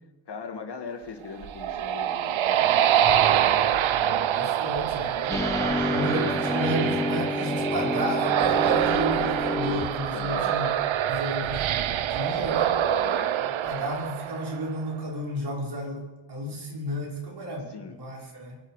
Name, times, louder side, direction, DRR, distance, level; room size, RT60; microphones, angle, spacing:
voice 1, 0.3-3.9 5.5-6.3 10.1-10.6 12.8-13.4 17.7-18.0, left 5 dB, 60° left, 6 dB, 2.0 m, -41 dB
sound 1, 1.2-14.8, right 10 dB, 85° right, 0.8 m, -25 dB
voice 2, 4.3-5.4 5.9-10.7 11.1-11.7 12.1-12.7 13.6-16.0 16.3-17.7 18.0-18.6, right 1 dB, 55° right, -3 dB, 5.6 m, -32 dB
sound 2, 5.3-10.3, left 2 dB, 5° left, 0.4 m, -29 dB
24.0 x 12.0 x 4.9 m, 1.1 s
wide cardioid pair, 115°, 46 cm